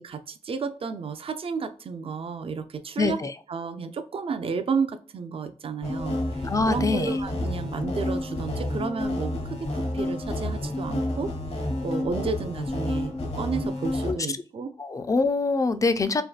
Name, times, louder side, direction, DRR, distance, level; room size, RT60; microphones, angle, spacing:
voice 1, 0.0-3.2 3.5-11.3 11.8-14.7, right 5 dB, 50° right, 9 dB, 0.4 m, -32 dB
voice 2, 3.0-3.3 6.4-7.2 14.1-14.2 14.8-16.2, left 3 dB, 30° left, 11 dB, 0.3 m, -24 dB
sound 1, 5.8-14.1, left 1 dB, 60° left, 0.8 m, -30 dB
3.4 x 2.2 x 2.3 m, 0.41 s
wide cardioid pair, 85°, 12 cm